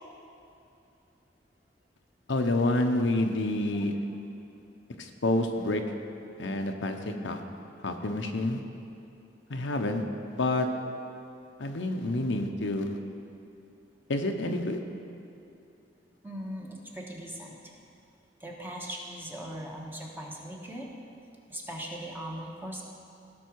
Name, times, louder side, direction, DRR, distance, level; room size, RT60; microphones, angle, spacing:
voice 1, 2.3-3.9 5.0-5.8 6.4-7.4 7.8-8.6 9.5-10.0 10.4-10.7 11.6-13.0 14.1-14.8, left 2 dB, 75° left, 4 dB, 0.8 m, -28 dB
voice 2, 3.8-4.2 16.2-17.7 18.4-20.9 21.5-22.8, equal, 10° right, -1 dB, 1.3 m, -40 dB
17.0 x 6.1 x 4.7 m, 2.8 s
head